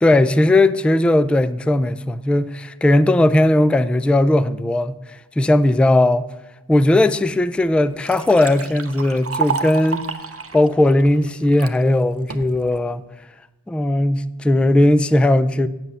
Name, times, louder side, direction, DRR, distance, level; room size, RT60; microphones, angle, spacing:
voice 1, 0.0-5.0 5.4-6.3 6.7-10.0 10.5-13.0 13.7-15.7, left 1 dB, 5° left, 0.3 m, -17 dB
Liquid, 7.3-7.4 7.7-11.8 12.3-12.8, right 5 dB, 35° right, 0.7 m, -29 dB
9.4 x 7.8 x 6.9 m
wide cardioid pair, 80°, 40 cm